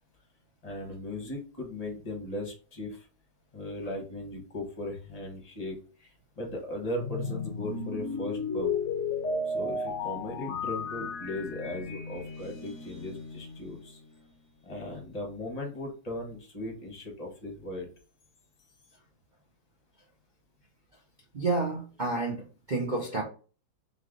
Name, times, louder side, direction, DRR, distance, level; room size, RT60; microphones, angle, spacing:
voice 1, 0.6-3.1 3.5-8.8 9.5-14.0 14.6-17.9, left 1 dB, 25° left, 2 dB, 1.0 m, -38 dB
sound 1, 6.9-14.1, left 4 dB, 60° left, 0.8 m, -34 dB
voice 2, 21.3-23.2, right 3 dB, 65° right, -1 dB, 0.4 m, -30 dB
3.7 x 3.3 x 3.7 m, 0.37 s
omnidirectional pair, 2.1 m